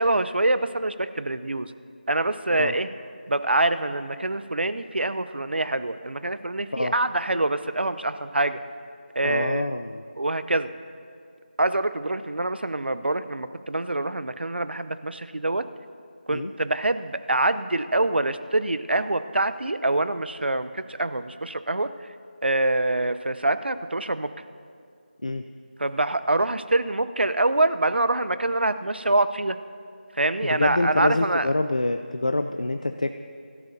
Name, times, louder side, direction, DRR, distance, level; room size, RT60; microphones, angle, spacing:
voice 1, 0.0-1.7 2.1-2.9 3.3-8.6 9.1-9.7 10.2-10.7 11.6-15.7 16.3-21.9 22.4-24.3 25.8-29.6 30.2-31.5, right 2 dB, 90° right, 13 dB, 0.7 m, -25 dB
voice 2, 9.2-10.0 16.3-16.5 25.2-25.5 30.4-33.1, left 2 dB, 45° left, 7 dB, 0.4 m, -26 dB
24.0 x 13.0 x 2.8 m, 2.3 s
figure-of-eight pair, 180°, 5 cm